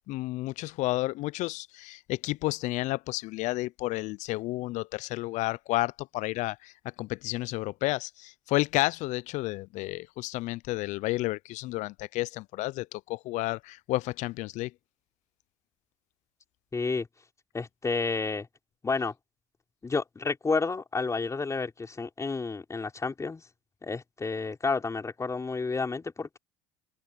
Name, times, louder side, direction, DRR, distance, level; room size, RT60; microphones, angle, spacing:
voice 1, 0.1-6.7 7.0-14.7, left 19 dB, 60° left, 0.7 m, -31 dB
voice 2, 16.7-17.1 17.5-18.5 18.8-19.1 19.8-23.4 23.8-26.4, left 4 dB, 20° left, 4.3 m, -30 dB
hypercardioid pair, 75°, 14 cm